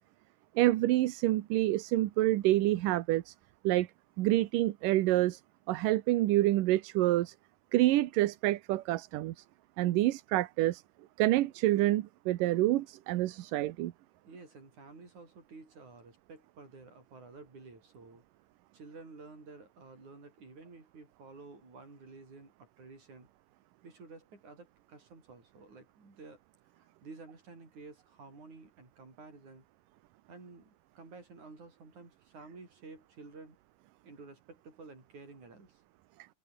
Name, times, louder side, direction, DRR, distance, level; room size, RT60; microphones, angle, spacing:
voice 1, 0.6-3.4 3.6-3.9 4.2-5.4 5.7-7.3 7.7-9.4 9.8-10.8 11.2-13.9, right 16 dB, 80° right, 2.6 m, -27 dB
voice 2, 14.3-18.2 18.7-23.3 23.8-26.4 26.7-29.6 30.3-33.6 34.0-35.8, right 3 dB, 60° right, 8.7 m, -52 dB
omnidirectional pair, 3.8 m